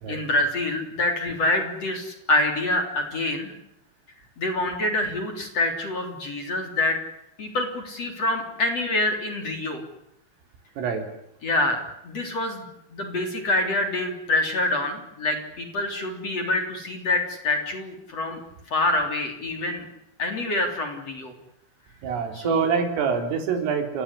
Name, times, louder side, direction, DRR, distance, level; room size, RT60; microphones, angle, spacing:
voice 1, 0.1-3.5 4.4-7.0 7.4-9.8 11.4-11.8 12.0-12.6 12.9-18.4 18.7-19.9 20.2-21.3 22.3-22.7, left 2 dB, 35° left, 5 dB, 3.9 m, -26 dB
voice 2, 22.0-24.0, right 6 dB, 80° right, 6 dB, 6.1 m, -25 dB
29.5 x 18.0 x 9.9 m, 0.81 s
omnidirectional pair, 5.7 m